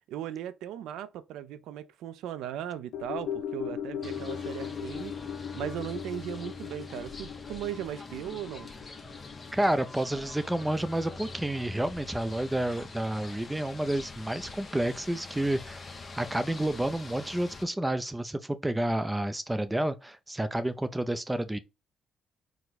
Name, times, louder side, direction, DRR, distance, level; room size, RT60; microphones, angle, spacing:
voice 1, 0.0-5.1 5.5-8.7, right 10 dB, 90° right, 0.4 m, -37 dB
sound 1, 2.9-11.4 11.7-11.8, left 8 dB, 85° left, 0.5 m, -39 dB
sound 2, 4.0-17.6, left 3 dB, 35° left, 0.9 m, -44 dB
voice 2, 9.5-15.8 16.1-21.6, right 1 dB, 10° right, 0.5 m, -30 dB
4.6 x 2.2 x 4.0 m
cardioid pair, 90°, 0 cm